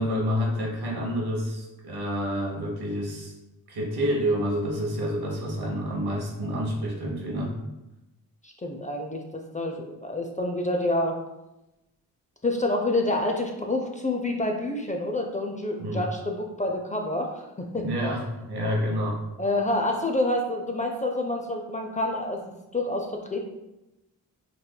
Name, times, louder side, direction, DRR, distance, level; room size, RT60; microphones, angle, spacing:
voice 1, 0.0-3.3 3.7-7.5 15.8-16.0 17.8-19.2, equal, 65° right, -1 dB, 1.0 m, -28 dB
voice 2, 8.4-11.2 12.4-17.9 19.4-23.5, left 1 dB, 20° left, 2 dB, 0.4 m, -28 dB
4.2 x 2.5 x 2.2 m, 0.95 s
supercardioid pair, 50°, 41 cm